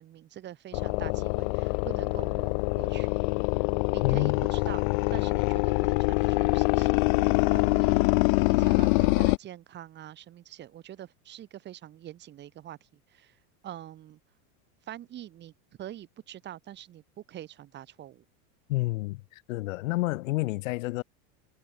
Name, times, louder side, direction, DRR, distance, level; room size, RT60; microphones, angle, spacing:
voice 1, 0.0-3.2 3.9-8.1 8.5-12.8 13.1-13.4 13.6-14.2 14.9-15.5 15.8-18.2, right 12 dB, 25° right, 5.7 m, -44 dB
sound 1, 0.7-9.4, left 28 dB, 35° left, 0.5 m, -25 dB
voice 2, 4.0-4.5 18.7-21.0, left 20 dB, 60° left, 2.5 m, -29 dB
supercardioid pair, 180°, 43 cm